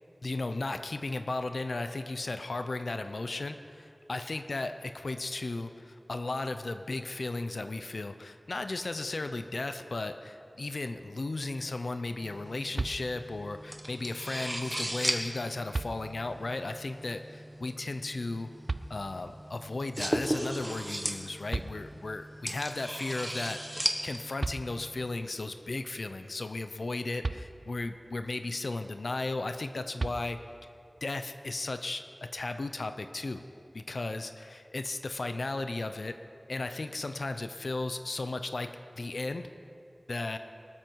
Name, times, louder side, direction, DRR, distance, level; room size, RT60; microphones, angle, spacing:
voice 1, 0.2-18.5 18.9-30.4 31.0-32.0 32.3-33.4 33.7-36.2 36.5-38.7 39.0-39.4 40.1-40.4, left 2 dB, 85° left, 9 dB, 0.7 m, -35 dB
sound 1, 12.2-25.0, right 1 dB, 25° right, 1.4 m, -37 dB
sound 2, 12.7-13.5 15.0-15.1 15.7-16.5 18.7-19.4 21.2-21.3 21.5-22.3 24.0-24.1 24.4-25.2 27.2-28.0 30.0-30.8, right 3 dB, 75° right, 0.4 m, -37 dB
19.5 x 13.0 x 4.7 m, 2.5 s
wide cardioid pair, 50°, 0 cm